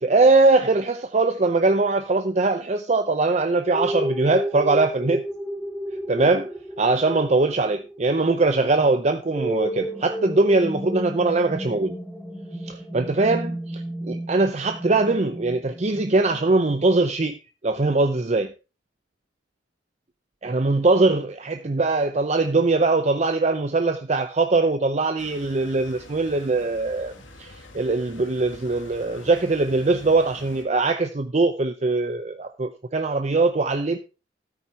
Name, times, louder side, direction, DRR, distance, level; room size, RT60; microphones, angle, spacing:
voice 1, 0.0-5.2 6.1-6.5 6.8-11.9 12.6-17.4 17.6-18.5 20.4-27.1 27.4-34.0, right 3 dB, 35° right, 0.6 m, -21 dB
sound 1, 3.7-16.9, equal, ahead, 1.2 m, -32 dB
sound 2, 25.2-30.6, left 2 dB, 85° left, 2.3 m, -46 dB
13.5 x 9.0 x 2.8 m
head